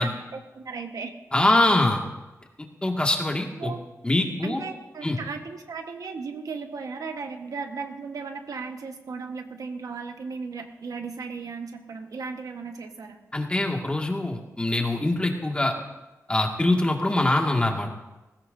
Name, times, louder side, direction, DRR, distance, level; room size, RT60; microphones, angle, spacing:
voice 1, 0.0-1.1 3.6-3.8 4.4-13.2, right 4 dB, 85° right, 5 dB, 1.3 m, -36 dB
voice 2, 1.3-2.0 2.6-3.7 4.0-4.6 5.0-5.2 13.3-15.7 16.3-17.9, left 2 dB, 20° left, 1 dB, 2.0 m, -23 dB
20.0 x 16.0 x 2.7 m, 1.1 s
wide cardioid pair, 90°, 6 cm